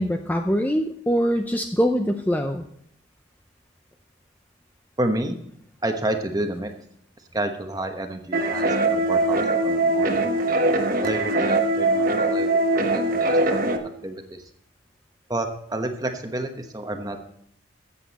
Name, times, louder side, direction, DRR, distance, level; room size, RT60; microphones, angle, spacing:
voice 1, 0.0-2.6, equal, 10° left, 5 dB, 0.5 m, -23 dB
voice 2, 5.0-5.4 5.8-6.7 7.3-10.3 11.0-14.5 15.3-17.2, right 1 dB, 20° right, 6 dB, 1.1 m, -30 dB
sound 1, 8.3-13.8, right 2 dB, 45° right, 1.1 m, -22 dB
14.0 x 8.3 x 4.1 m, 0.70 s
head